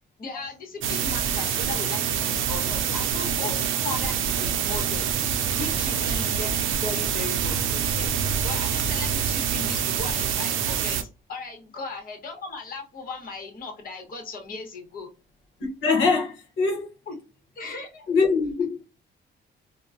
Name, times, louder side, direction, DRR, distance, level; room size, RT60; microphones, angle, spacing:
voice 1, 0.2-5.1 5.5-8.1 8.4-15.1 17.1-17.2 17.5-18.0, left 3 dB, 45° left, 1.0 m, -37 dB
sound 1, 0.8-11.0, right 8 dB, 80° right, 0.5 m, -26 dB
voice 2, 15.6-16.9 18.1-18.8, left 4 dB, 75° left, 0.9 m, -23 dB
3.7 x 2.1 x 2.4 m
cardioid pair, 90°, 20 cm